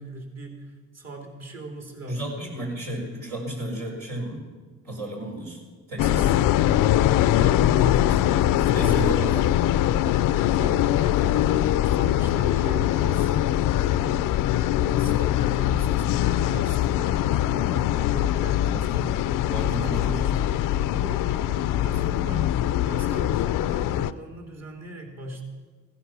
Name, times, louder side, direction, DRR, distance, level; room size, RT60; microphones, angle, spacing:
voice 1, 0.0-2.2 2.8-2.9 7.4-7.9 8.6-8.9 9.2-9.4 10.3-18.9 19.4-22.6 22.9-25.4, right 2 dB, 50° right, 2 dB, 3.3 m, -39 dB
voice 2, 2.1-4.4 4.8-5.6 5.9-6.3 7.8-8.4 8.8-9.6 15.0-15.2 18.7-20.5, right 1 dB, 75° right, -2 dB, 4.7 m, -33 dB
sound 1, 6.0-24.1, left 12 dB, 80° left, 0.5 m, -22 dB
16.5 x 11.5 x 6.0 m, 1.4 s
cardioid pair, 80°, 32 cm